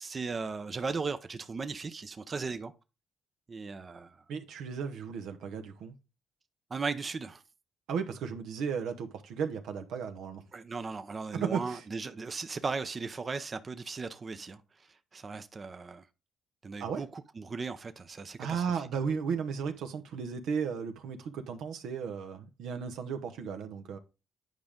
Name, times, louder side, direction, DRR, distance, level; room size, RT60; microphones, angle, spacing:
voice 1, 0.0-2.7 3.5-4.2 6.7-7.4 10.5-14.6 15.1-16.0 16.6-18.9, right 4 dB, 35° right, 0.6 m, -37 dB
voice 2, 4.3-5.9 7.9-10.4 11.3-11.8 16.8-17.0 18.4-24.0, right 6 dB, 80° right, 1.0 m, -35 dB
9.5 x 5.1 x 3.6 m
cardioid pair, 90°, 0 cm